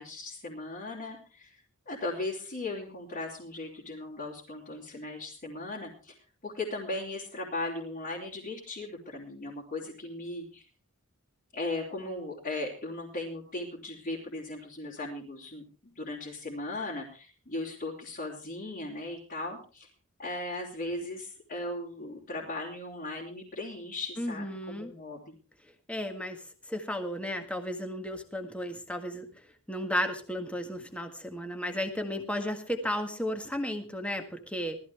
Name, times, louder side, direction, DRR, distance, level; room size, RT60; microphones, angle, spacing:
voice 1, 0.0-1.6 1.9-6.2 6.4-10.6 11.5-19.9 20.2-25.4, left 2 dB, 40° left, -5 dB, 3.5 m, -37 dB
voice 2, 24.2-24.9 25.9-26.4 26.7-29.3 29.7-34.8, equal, 5° left, 5 dB, 1.7 m, -34 dB
19.0 x 13.5 x 3.5 m, 0.35 s
head